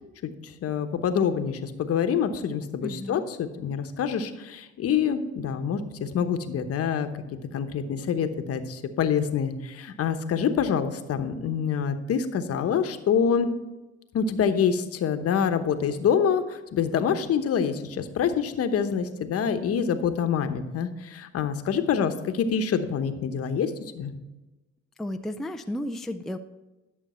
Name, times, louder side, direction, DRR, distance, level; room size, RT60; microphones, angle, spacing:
voice 1, 0.6-7.1 7.5-13.5 14.1-23.7 24.0-24.1, left 7 dB, 55° left, 8 dB, 1.0 m, -26 dB
voice 2, 2.8-3.3 25.0-26.4, left 1 dB, ahead, 6 dB, 0.4 m, -33 dB
11.5 x 6.8 x 4.3 m, 1.1 s
cardioid pair, 90°, 29 cm